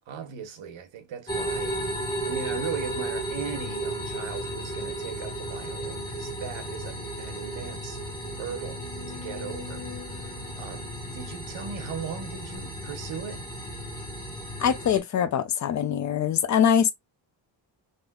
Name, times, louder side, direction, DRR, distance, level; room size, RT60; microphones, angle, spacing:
voice 1, 0.0-1.8 2.2-8.0 8.4-8.8 9.1-13.4, right 7 dB, 85° right, 1.0 m, -38 dB
sound 1, 1.3-15.0, right 1 dB, 10° left, 1.3 m, -34 dB
sound 2, 6.5-6.6 7.0-7.1 7.7-11.9 12.5-12.6, left 10 dB, 75° left, 0.8 m, -46 dB
voice 2, 14.6-16.9, left 8 dB, 40° left, 0.4 m, -23 dB
3.5 x 2.6 x 2.3 m
wide cardioid pair, 170°, 45 cm